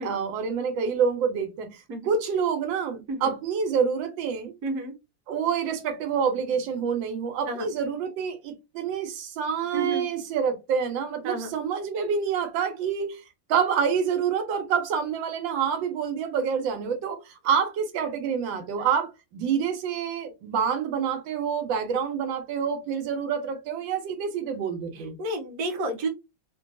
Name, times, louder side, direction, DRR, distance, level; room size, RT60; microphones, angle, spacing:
voice 1, 0.0-4.5 5.3-13.2 13.5-25.2, right 6 dB, 85° right, 1.4 m, -27 dB
voice 2, 4.6-4.9 7.4-7.7 9.7-10.1 11.2-11.5 24.9-26.1, right 2 dB, 60° right, 1.1 m, -31 dB
3.1 x 2.2 x 2.5 m
omnidirectional pair, 2.0 m